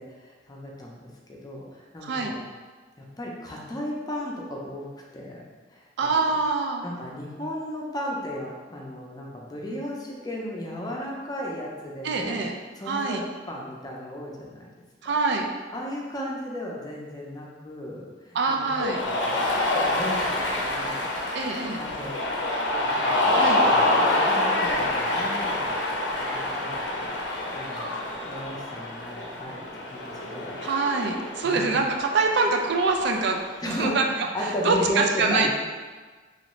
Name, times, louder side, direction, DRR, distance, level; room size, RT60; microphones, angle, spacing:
voice 1, 0.0-2.4 3.0-4.9 5.1-5.4 5.7-6.3 6.8-12.4 12.8-13.2 13.5-14.7 15.0-15.1 15.7-19.4 19.7-21.0 21.8-22.4 22.7-25.8 26.1-30.6 31.4-31.6 33.6-35.5, equal, 20° left, -3 dB, 0.5 m, -35 dB
voice 2, 6.0-6.8 12.0-12.5 12.9-13.2 15.0-15.5 18.3-19.0 21.3-21.8 23.3-23.6 30.6-33.4 33.7-35.5, right 3 dB, 65° right, 3 dB, 0.4 m, -25 dB
Cheering, 18.7-33.6, left 1 dB, 75° left, 0.5 m, -27 dB
3.0 x 2.6 x 3.0 m, 1.4 s
head